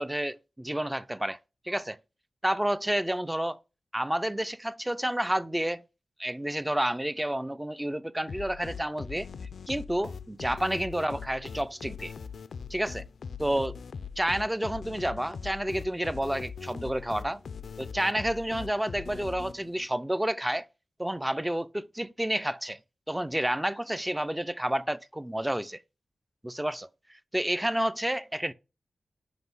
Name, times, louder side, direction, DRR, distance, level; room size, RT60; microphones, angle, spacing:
voice 1, 0.0-1.4 1.7-2.0 2.4-3.6 3.9-5.8 6.2-9.3 9.7-12.1 12.7-13.1 13.4-13.8 14.2-17.4 17.8-20.7 21.0-22.8 23.1-25.8 26.4-26.9 27.3-28.5, right 1 dB, 10° right, 0.4 m, -30 dB
sound 1, 8.3-19.9, left 6 dB, 80° left, 0.3 m, -41 dB
5.9 x 5.4 x 5.4 m
wide cardioid pair, 95°, 0 cm